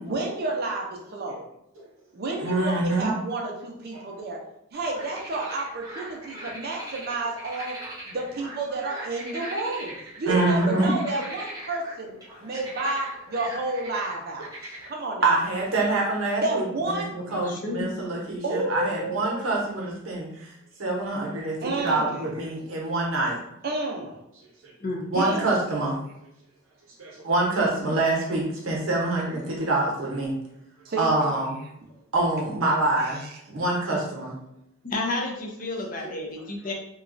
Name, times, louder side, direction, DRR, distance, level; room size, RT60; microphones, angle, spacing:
voice 1, 0.0-1.4 2.1-4.4 4.7-7.8 8.0-12.1 12.4-14.5 14.9-15.4 16.4-17.2 18.4-19.4 21.6-22.3 23.6-24.2 25.1-25.4 30.8-31.1 33.0-33.4, right 2 dB, 50° right, 0 dB, 0.5 m, -30 dB
voice 2, 2.4-3.1 3.9-4.3 10.3-10.9 15.2-20.5 20.8-23.4 25.1-26.0 27.0-30.4 31.0-31.6 32.1-33.2 33.5-34.4 36.0-36.1, right 2 dB, 70° right, -2 dB, 0.9 m, -25 dB
sound 1, 4.7-14.9, right 1 dB, 20° right, 0.8 m, -40 dB
voice 3, 17.3-17.9 24.8-25.5 34.8-36.7, left 2 dB, 40° left, 0 dB, 0.5 m, -32 dB
3.0 x 2.3 x 2.5 m, 0.80 s
head